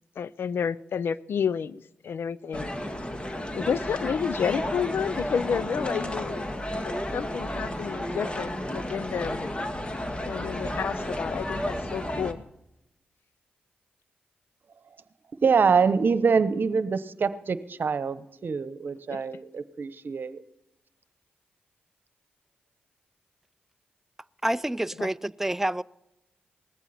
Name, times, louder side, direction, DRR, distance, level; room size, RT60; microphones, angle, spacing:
voice 1, 0.2-2.7 3.5-6.4 6.8-9.5 10.3-12.4 19.1-19.2 25.0-25.1, left 7 dB, 70° left, 0.5 m, -30 dB
sound 1, 2.5-12.3, left 1 dB, 25° left, 2.1 m, -32 dB
voice 2, 15.3-20.4, right 5 dB, 60° right, 1.0 m, -25 dB
voice 3, 24.4-25.8, right 1 dB, 10° right, 0.4 m, -28 dB
19.5 x 14.5 x 4.3 m
supercardioid pair, 45°, 4 cm